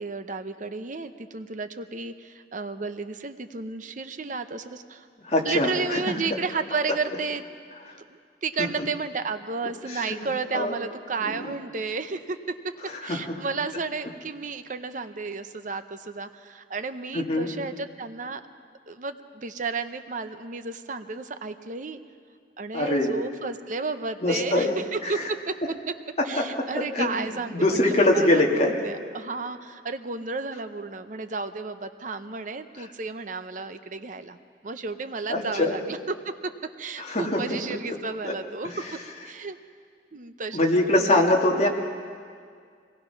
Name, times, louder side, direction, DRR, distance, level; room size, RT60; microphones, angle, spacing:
voice 1, 0.0-5.1 5.4-7.4 8.1-12.4 13.0-18.4 18.9-22.0 22.6-25.5 26.2-34.4 34.6-36.3 36.8-38.8 39.2-39.6 40.1-41.2, right 4 dB, 45° right, 10 dB, 0.8 m, -32 dB
voice 2, 5.2-6.1 8.6-8.7 9.9-10.2 10.5-10.7 11.2-11.5 13.0-13.4 17.1-17.5 22.7-23.1 24.2-24.8 26.2-28.7 35.3-35.8 37.0-37.4 38.2-38.3 38.6-38.7 40.5-41.7, left 1 dB, 40° left, -1 dB, 2.2 m, -23 dB
24.5 x 18.5 x 5.9 m, 2.1 s
head